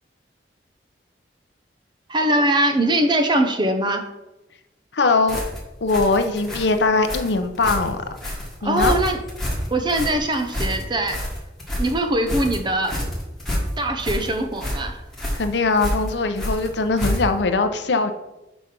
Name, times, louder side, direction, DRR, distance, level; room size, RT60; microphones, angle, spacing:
voice 1, 2.1-4.0 8.6-9.2 9.7-11.2 11.8-12.9 13.8-15.0, right 1 dB, 25° right, 5 dB, 0.7 m, -21 dB
voice 2, 4.9-5.4 5.8-8.0 8.6-9.0 15.3-18.1, left 3 dB, 70° left, 8 dB, 0.6 m, -21 dB
sound 1, 5.3-17.5, equal, ahead, 1.5 m, -28 dB
5.1 x 5.0 x 5.9 m, 0.98 s
head